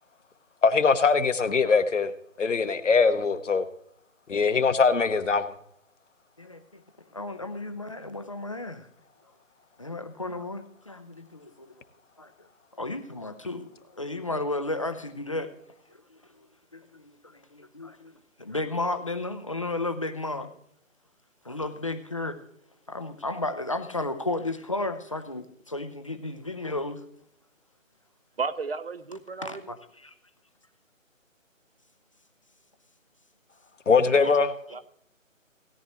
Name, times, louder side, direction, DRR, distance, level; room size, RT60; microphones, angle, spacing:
voice 1, 0.6-2.1 2.4-3.7 4.3-5.5 33.9-34.5, left 4 dB, 65° left, 1.1 m, -22 dB
voice 2, 7.1-8.9 9.8-11.8 12.2-12.3 12.8-13.7 14.0-15.5 16.1-16.2 16.7-18.1 18.4-20.5 21.4-22.4 22.9-27.0 29.4-29.8 30.0-30.1 34.2-34.3, left 2 dB, 25° left, 0.6 m, -33 dB
voice 3, 28.4-29.6 34.1-34.4 34.7-34.8, right 4 dB, 50° right, 0.7 m, -33 dB
17.0 x 9.9 x 3.1 m
figure-of-eight pair, 150°, 40 cm